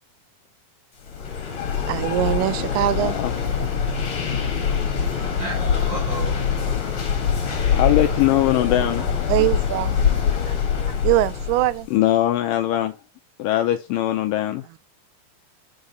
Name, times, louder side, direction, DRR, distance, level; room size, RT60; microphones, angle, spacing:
sound 1, 1.0-11.9, left 6 dB, 50° left, 1.8 m, -24 dB
voice 1, 1.9-3.2 5.2-5.5 9.3-10.0 11.0-11.9, right 15 dB, 90° right, 2.6 m, -22 dB
voice 2, 3.0-3.3 7.7-9.0 11.9-12.9 13.4-14.6, left 13 dB, 85° left, 2.0 m, -21 dB
voice 3, 5.3-6.4 6.7-7.1 9.0-9.1 10.3-10.6 10.9-11.0, right 3 dB, 60° right, 1.2 m, -35 dB
5.5 x 4.8 x 5.1 m
omnidirectional pair, 4.5 m